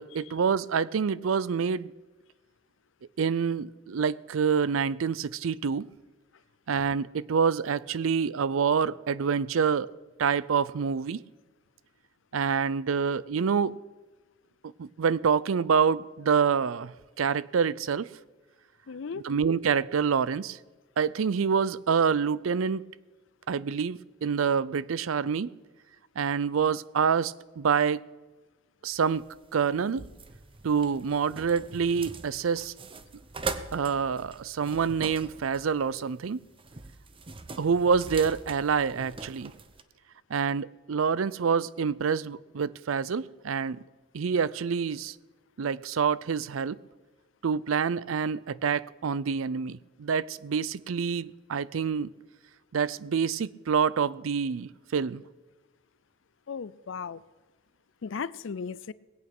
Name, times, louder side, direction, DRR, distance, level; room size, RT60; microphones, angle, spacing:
voice 1, 0.0-1.9 3.2-5.9 6.7-9.9 10.2-11.2 12.3-13.8 14.8-18.1 19.2-20.6 21.0-22.8 23.5-25.5 26.2-28.1 28.8-29.2 29.5-30.1 30.6-32.7 33.7-36.4 37.6-39.5 40.3-43.8 44.1-45.1 45.6-46.8 47.4-52.1 52.7-55.2, right 6 dB, 90° right, 0.5 m, -27 dB
voice 2, 18.9-19.3 56.5-57.2 58.0-58.9, left 5 dB, 65° left, 0.5 m, -36 dB
sound 1, 28.9-39.8, right 3 dB, 25° right, 0.7 m, -42 dB
19.5 x 8.6 x 6.0 m
head